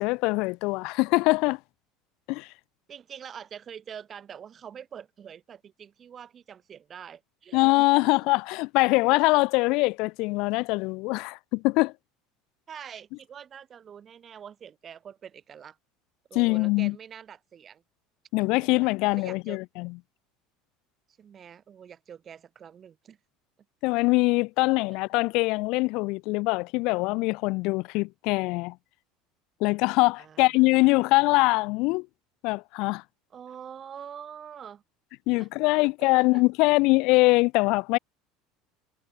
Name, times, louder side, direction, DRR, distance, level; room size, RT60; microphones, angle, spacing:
voice 1, 0.0-1.6 2.3-2.5 7.5-11.9 16.3-16.9 18.3-19.9 23.8-28.7 29.6-32.1 32.4-33.0 35.3-38.0, left 25 dB, 65° left, 1.5 m, -23 dB
voice 2, 2.9-7.7 8.0-8.1 12.7-15.8 16.3-17.8 18.6-19.6 21.2-23.2 24.8-25.0 30.2-30.5 33.3-34.8 35.4-35.5 35.8-36.4, right 8 dB, 40° right, 4.0 m, -45 dB
hypercardioid pair, 80°, 0 cm